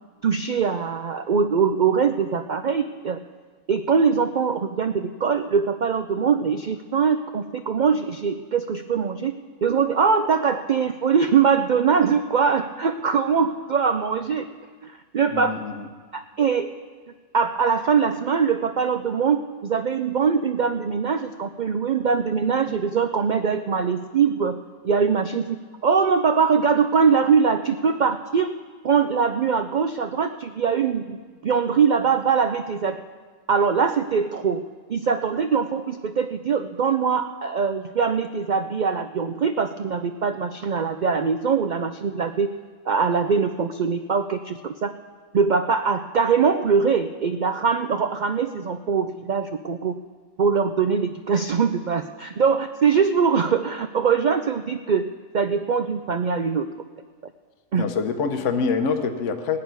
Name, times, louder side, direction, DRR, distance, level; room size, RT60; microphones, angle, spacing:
voice 1, 0.2-3.2 3.7-9.3 9.6-14.5 14.8-15.6 16.1-16.7 17.3-24.6 24.8-28.6 28.8-31.2 31.4-33.0 33.5-34.6 34.9-42.5 42.9-44.9 45.3-49.9 50.4-55.1 55.3-56.7 57.7-57.8, right 6 dB, 75° right, 8 dB, 0.4 m, -22 dB
voice 2, 15.3-15.9 57.8-59.6, left 5 dB, 65° left, 6 dB, 1.2 m, -25 dB
18.0 x 6.7 x 9.3 m, 1.5 s
omnidirectional pair, 1.4 m